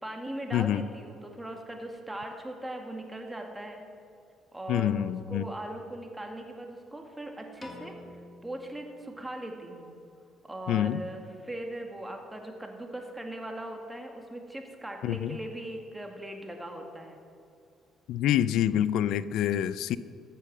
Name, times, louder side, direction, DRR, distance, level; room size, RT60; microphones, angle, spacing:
voice 1, 0.0-3.8 4.5-7.9 8.4-9.9 10.4-17.2, right 1 dB, 10° right, 3 dB, 2.1 m, -39 dB
voice 2, 0.5-0.8 4.7-5.4 10.7-11.0 15.0-15.4 18.1-20.0, left 11 dB, 75° left, 17 dB, 0.4 m, -26 dB
Piano, 7.6-9.9, left 1 dB, 25° left, 2.2 m, -49 dB
14.0 x 8.5 x 6.2 m, 2.4 s
supercardioid pair, 65°, 0 cm